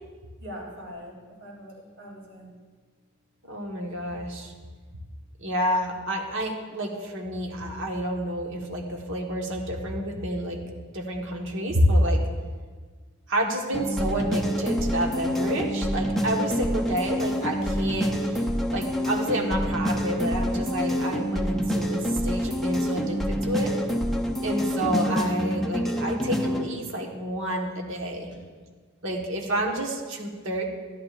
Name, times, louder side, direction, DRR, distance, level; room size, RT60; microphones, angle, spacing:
voice 1, 0.4-2.5, equal, 85° right, -4 dB, 3.5 m, -42 dB
voice 2, 3.5-4.5 5.4-10.6 10.9-12.3 13.3-23.7 24.4-28.3 29.0-30.6, equal, 60° right, 1 dB, 1.3 m, -29 dB
sound 1, 13.7-26.7, equal, ahead, 0.7 m, -27 dB
14.0 x 10.5 x 2.5 m, 1.5 s
head